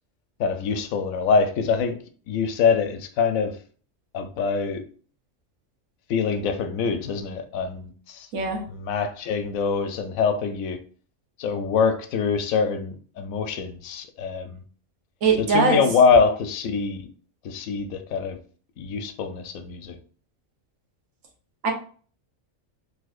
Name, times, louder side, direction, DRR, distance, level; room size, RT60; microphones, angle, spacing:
voice 1, 0.4-2.0 2.3-3.6 4.1-4.8 6.1-8.3 8.7-10.8 11.4-14.6 15.4-17.1 17.4-18.4 18.8-20.0, left 5 dB, 80° left, 1.0 m, -24 dB
voice 2, 15.2-15.8 21.6-21.7, right 4 dB, 75° right, 1.2 m, -21 dB
4.1 x 2.4 x 2.4 m
omnidirectional pair, 1.4 m